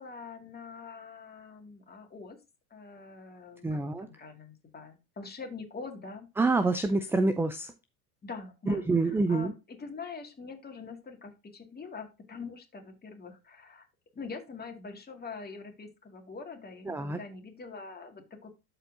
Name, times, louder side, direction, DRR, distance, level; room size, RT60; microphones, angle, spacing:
voice 1, 0.0-2.4 2.7-6.3 8.2-9.5 9.8-13.9 14.1-18.6, left 4 dB, 20° left, 4 dB, 2.1 m, -44 dB
voice 2, 3.6-4.1 6.4-7.7 8.7-9.5 16.9-17.2, right 3 dB, 5° right, 10 dB, 0.4 m, -27 dB
12.5 x 4.5 x 2.6 m, 0.26 s
supercardioid pair, 105°, 44 cm